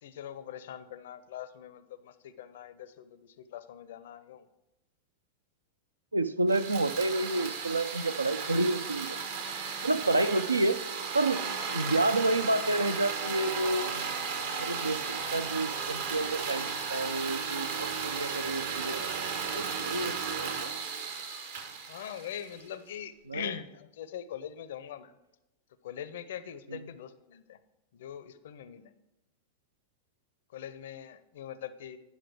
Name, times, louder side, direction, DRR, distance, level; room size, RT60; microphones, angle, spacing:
voice 1, 0.0-4.5 21.9-25.1 25.8-27.6 27.9-28.9 30.5-32.0, left 9 dB, 60° left, 14 dB, 0.5 m, -42 dB
voice 2, 6.1-9.2 9.8-10.8 11.1-11.4 11.7-14.1 14.6-19.1 19.5-20.7 23.3-23.5 26.7-26.9, right 2 dB, 80° right, 12 dB, 0.4 m, -29 dB
sound 1, 6.5-22.7, right 6 dB, 55° right, 0.9 m, -35 dB
9.7 x 6.0 x 4.6 m, 0.95 s
figure-of-eight pair, 90°, 0 cm